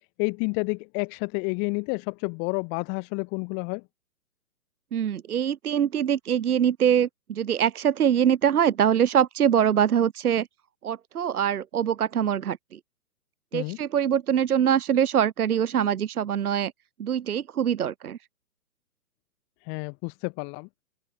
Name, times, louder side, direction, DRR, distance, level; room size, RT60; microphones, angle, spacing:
voice 1, 0.2-3.8 13.5-13.8 19.6-20.7, left 35 dB, 20° left, 1.3 m, -30 dB
voice 2, 4.9-10.5 10.8-12.8 13.5-16.7 17.0-18.2, right 9 dB, 70° right, 1.3 m, -23 dB
open air
hypercardioid pair, 135°, 46 cm